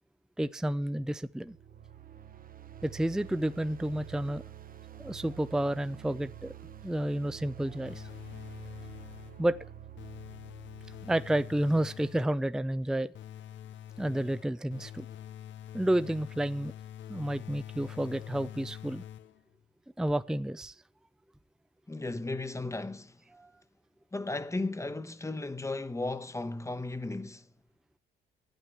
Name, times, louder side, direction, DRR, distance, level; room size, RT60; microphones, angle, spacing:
voice 1, 0.4-1.6 2.8-4.4 5.0-6.5 6.8-8.1 9.4-9.6 11.0-13.1 14.0-15.1 15.7-16.7 17.1-19.0 20.0-20.7 23.3-23.5, right 1 dB, 5° right, 0.5 m, -30 dB
sound 1, 1.3-12.4, right 11 dB, 45° right, 1.0 m, -49 dB
sound 2, 7.8-9.5 10.0-12.5 13.1-19.5, left 11 dB, 70° left, 0.7 m, -45 dB
voice 2, 21.9-23.2 24.1-27.5, left 2 dB, 15° left, 1.1 m, -35 dB
11.0 x 9.2 x 7.1 m
cardioid pair, 90°, 20 cm